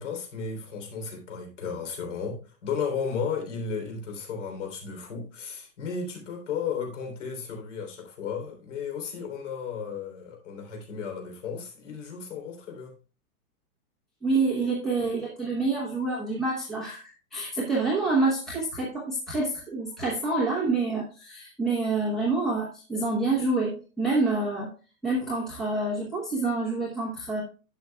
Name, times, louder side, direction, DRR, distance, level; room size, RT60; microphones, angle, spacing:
voice 1, 0.0-12.9, left 6 dB, 50° left, 3.4 m, -34 dB
voice 2, 14.2-24.7 25.0-27.4, right 3 dB, ahead, 0.8 m, -27 dB
11.0 x 7.5 x 2.2 m
supercardioid pair, 180°, 45 cm